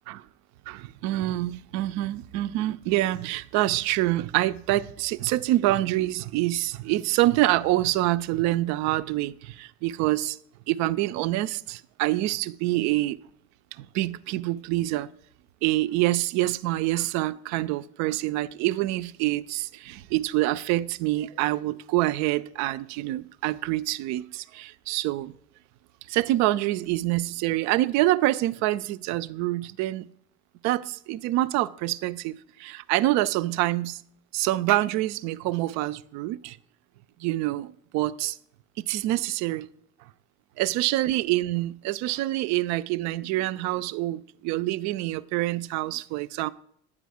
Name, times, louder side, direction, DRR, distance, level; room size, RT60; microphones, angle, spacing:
voice 1, 0.7-10.4 10.7-13.2 13.8-15.1 15.6-25.3 26.1-30.0 30.6-34.0 34.3-36.6 37.2-38.4 38.8-39.7 40.6-46.5, right 16 dB, 60° right, 0.5 m, -26 dB
8.4 x 5.1 x 4.8 m
hypercardioid pair, 60°, 32 cm